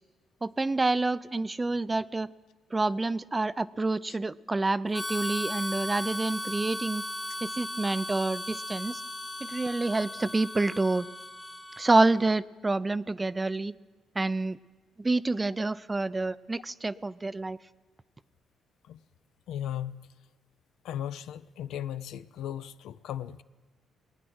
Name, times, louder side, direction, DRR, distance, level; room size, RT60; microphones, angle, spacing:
voice 1, 0.4-2.3 2.7-7.0 7.4-9.0 9.4-11.1 11.8-13.7 14.2-14.6 15.0-17.6, right 2 dB, 20° right, 17 dB, 0.4 m, -28 dB
Harmonica, 4.9-12.2, left 1 dB, 10° left, 1.0 m, -37 dB
voice 2, 19.5-20.1 20.8-23.4, left 10 dB, 85° left, 14 dB, 0.4 m, -36 dB
19.5 x 9.0 x 6.2 m, 1.3 s
cardioid pair, 90°, 0 cm